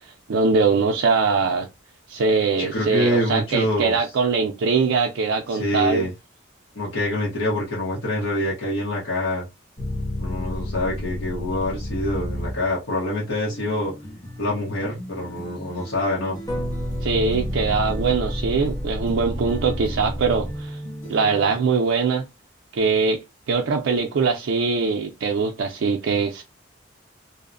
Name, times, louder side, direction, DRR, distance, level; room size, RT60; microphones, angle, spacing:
voice 1, 0.3-1.7 2.1-6.1 17.0-20.8 21.1-22.3 22.7-23.2 23.5-26.4, right 4 dB, 85° right, 0.4 m, -22 dB
voice 2, 2.6-4.0 5.5-6.1 6.8-9.5 10.2-13.9 14.4-16.4, left 1 dB, 85° left, 0.9 m, -25 dB
sound 1, 9.8-12.9 16.5-21.0, equal, 15° left, 0.6 m, -29 dB
sound 2, 13.5-21.6, equal, 65° left, 1.3 m, -40 dB
2.8 x 2.0 x 2.5 m
head